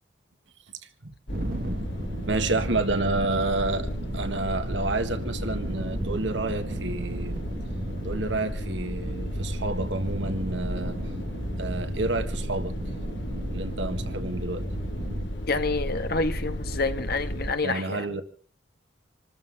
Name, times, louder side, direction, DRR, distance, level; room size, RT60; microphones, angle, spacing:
sound 1, 1.3-17.5, equal, 75° left, 2.8 m, -33 dB
sound 2, 1.3-15.3, right 1 dB, 50° right, 1.5 m, -36 dB
voice 1, 2.3-7.4 8.0-11.0 11.6-12.8 13.5-14.6 17.6-18.2, right 2 dB, 80° right, 1.8 m, -29 dB
voice 2, 15.5-18.0, left 3 dB, 55° left, 1.6 m, -28 dB
27.0 x 14.0 x 3.6 m
head